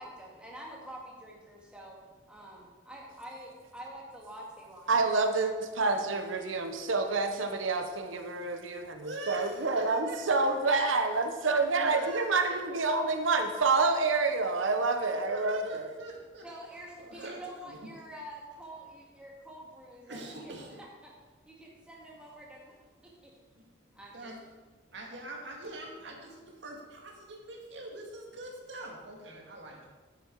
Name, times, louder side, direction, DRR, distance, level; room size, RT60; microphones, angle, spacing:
voice 1, 0.0-2.0 2.3-5.0 16.4-20.5 20.8-21.1 21.4-23.3 23.9-24.3, right 1 dB, 5° right, -3 dB, 1.9 m, -47 dB
voice 2, 4.9-15.9, right 3 dB, 90° right, 6 dB, 1.0 m, -28 dB
voice 3, 9.0-11.2 11.5-12.9 15.0-16.5 17.0-17.9 20.1-20.8 23.5-23.7 24.1-24.4 24.9-29.9, right 1 dB, 70° right, 0 dB, 2.1 m, -44 dB
9.5 x 9.3 x 4.7 m, 1.3 s
head